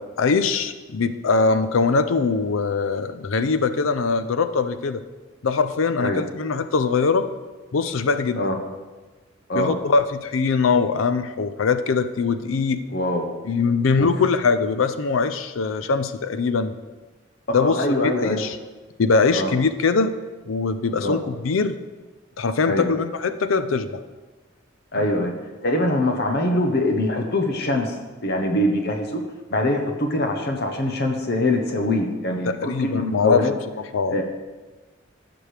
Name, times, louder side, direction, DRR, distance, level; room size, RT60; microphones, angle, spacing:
voice 1, 0.2-5.0 5.4-7.3 7.7-8.4 9.6-12.8 13.4-16.7 17.5-18.6 19.0-20.1 20.5-21.8 22.4-24.0 32.6-33.4 33.9-34.2, left 4 dB, 90° left, 11 dB, 0.5 m, -22 dB
voice 2, 12.9-13.3 14.0-14.1 17.5-18.4 19.3-19.5 21.0-21.2 22.6-22.9 24.9-25.3 25.6-28.0 28.2-29.2 29.5-33.5 34.1-34.2, left 1 dB, 55° left, 4 dB, 1.1 m, -23 dB
15.5 x 6.0 x 3.4 m, 1.3 s
head